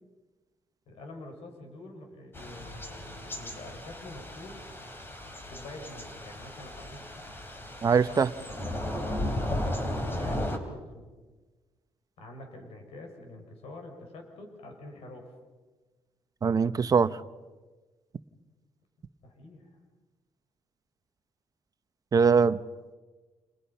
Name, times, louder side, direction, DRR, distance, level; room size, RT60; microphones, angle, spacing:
voice 1, 0.9-4.6 5.5-7.0 8.1-8.2 9.0-11.1 12.2-15.3 19.2-19.8, left 2 dB, 75° left, 3 dB, 6.3 m, -46 dB
Thunder / Rain, 2.3-10.6, left 1 dB, 20° left, 3.8 m, -35 dB
voice 2, 7.8-8.3 16.4-17.2 22.1-22.6, right 5 dB, 35° right, 12 dB, 1.0 m, -22 dB
30.0 x 29.0 x 5.8 m, 1.3 s
cardioid pair, 115°, 10 cm